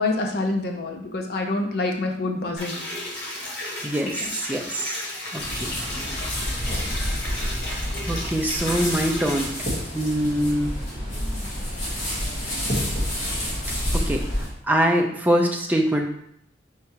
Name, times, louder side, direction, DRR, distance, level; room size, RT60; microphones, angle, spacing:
voice 1, 0.0-2.8 4.0-4.2, left 2 dB, 55° left, 2 dB, 0.6 m, -26 dB
sound 1, 2.6-9.4, left 1 dB, 90° left, 1.6 m, -33 dB
voice 2, 3.8-5.0 5.3-5.7 7.3-7.6 8.0-9.7 9.9-10.7 13.9-14.2 14.6-16.1, equal, 10° right, 1 dB, 0.4 m, -24 dB
sound 2, 5.4-14.5, equal, 40° left, 1.4 m, -28 dB
4.4 x 3.5 x 2.9 m, 0.72 s
head